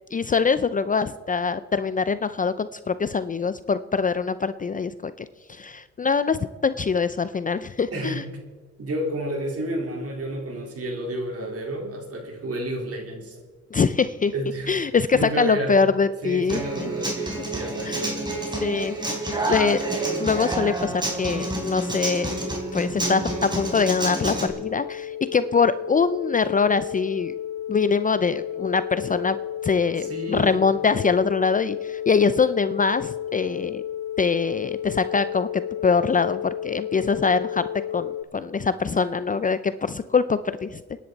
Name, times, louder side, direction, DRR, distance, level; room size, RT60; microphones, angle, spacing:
voice 1, 0.1-8.2 13.7-14.3 14.7-16.9 17.8-18.0 18.5-19.0 19.5-19.8 20.2-22.3 22.7-27.3 27.7-29.4 29.6-33.8 34.2-37.7 37.9-40.8, left 5 dB, 25° left, 13 dB, 0.5 m, -23 dB
voice 2, 7.9-8.4 8.8-13.4 14.3-14.8 15.1-15.8 16.2-18.2 30.0-30.7, right 1 dB, 50° right, 1 dB, 4.0 m, -31 dB
Human voice / Acoustic guitar, 16.5-24.5, right 2 dB, 15° right, 3.6 m, -28 dB
sound 1, 21.3-38.2, left 10 dB, 85° left, 0.7 m, -33 dB
29.0 x 10.5 x 4.1 m, 1.4 s
cardioid pair, 90°, 30 cm